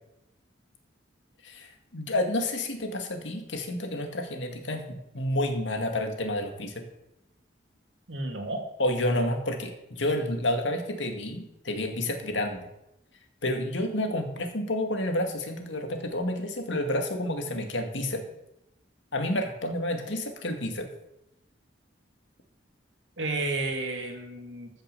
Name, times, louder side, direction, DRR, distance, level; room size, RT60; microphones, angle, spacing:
voice 1, 1.4-6.8 8.8-12.7 13.4-18.2 19.1-20.9, left 1 dB, 75° left, 5 dB, 2.1 m, -30 dB
voice 2, 8.1-8.6 23.2-24.7, right 2 dB, 75° right, 3 dB, 2.5 m, -31 dB
14.0 x 6.8 x 6.8 m, 0.87 s
head